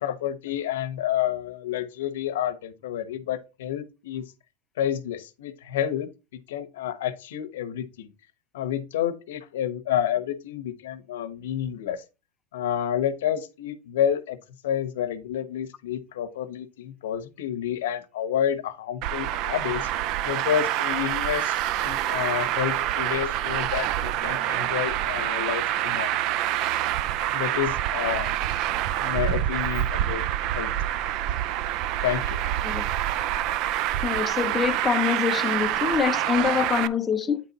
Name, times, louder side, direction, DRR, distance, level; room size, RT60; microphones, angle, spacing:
voice 1, 0.0-4.2 4.8-6.1 6.5-8.1 8.5-12.0 12.5-14.4 14.6-19.9 20.2-26.1 27.3-28.4 29.0-30.2 30.5-30.7 32.0-32.4, left 10 dB, 90° left, 0.9 m, -29 dB
Traffic noise roadway noise, 19.0-36.9, right 12 dB, 50° right, 0.4 m, -26 dB
voice 2, 34.0-37.4, left 7 dB, 15° left, 0.5 m, -25 dB
8.8 x 4.0 x 4.1 m
supercardioid pair, 145°, 0 cm